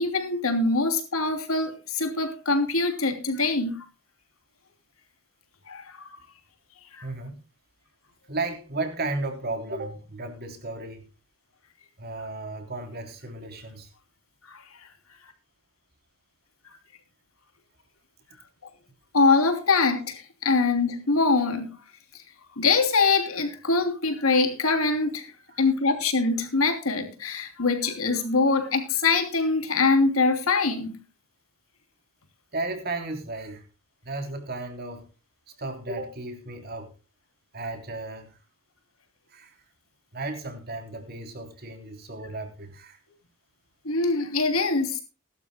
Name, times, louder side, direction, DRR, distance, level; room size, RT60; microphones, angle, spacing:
voice 1, 0.0-3.8 5.7-6.1 6.9-7.0 14.5-14.6 19.1-21.7 22.6-25.3 25.6-31.0 43.8-45.0, left 3 dB, 90° left, 7 dB, 3.2 m, -23 dB
voice 2, 7.0-7.4 8.3-11.1 12.0-13.9 32.5-33.6 34.0-35.1 35.6-36.9 37.5-38.4 39.3-39.5 40.1-43.0, right 2 dB, 45° right, 6 dB, 3.4 m, -34 dB
20.5 x 12.0 x 2.2 m, 0.31 s
head